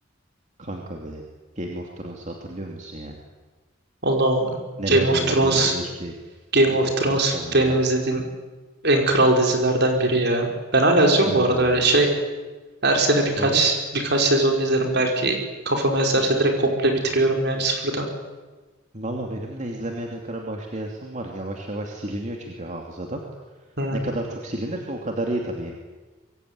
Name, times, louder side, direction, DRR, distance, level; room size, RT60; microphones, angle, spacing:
voice 1, 0.6-1.2 1.6-3.2 4.8-6.2 6.7-7.8 11.2-11.8 13.3-13.7 18.9-23.2 23.9-25.7, right 1 dB, 35° right, 1 dB, 2.8 m, -32 dB
voice 2, 4.0-4.5 4.9-5.7 6.5-8.2 8.8-10.5 10.7-12.1 12.8-15.4 15.7-18.0 23.8-24.0, right 2 dB, 55° right, 3 dB, 5.2 m, -20 dB
25.0 x 22.5 x 9.7 m, 1.3 s
head